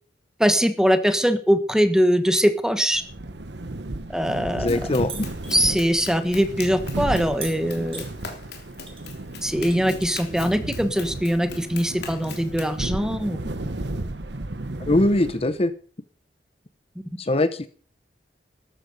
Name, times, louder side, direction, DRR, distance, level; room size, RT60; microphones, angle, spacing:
voice 1, 0.4-3.0 4.1-4.7 5.5-8.0 9.4-13.4, equal, 5° right, 9 dB, 1.3 m, -22 dB
sound 1, 2.9-15.7, right 2 dB, 75° right, 1.2 m, -33 dB
voice 2, 4.5-5.2 14.8-15.7 17.2-17.7, left 1 dB, 35° left, 12 dB, 0.8 m, -22 dB
Run, 4.7-12.8, left 5 dB, 65° left, 3.4 m, -41 dB
sound 2, 5.1-5.5 7.4-8.1 8.9-9.1 9.4-10.3 11.5-11.6, right 5 dB, 35° right, 3.3 m, -38 dB
13.5 x 13.0 x 5.3 m, 0.42 s
head